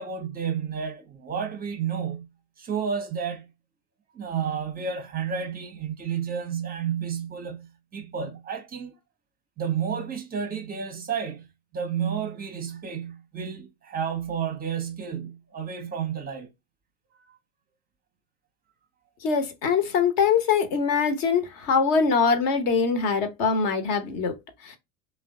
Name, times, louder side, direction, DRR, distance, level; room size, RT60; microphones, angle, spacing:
voice 1, 0.0-2.3 2.6-3.5 4.1-8.9 9.6-11.5 11.7-16.5, right 7 dB, 20° right, 0.7 m, -31 dB
voice 2, 19.2-24.3 24.6-24.8, left 5 dB, 45° left, 1.0 m, -23 dB
3.2 x 2.2 x 3.6 m
figure-of-eight pair, 75°, 44 cm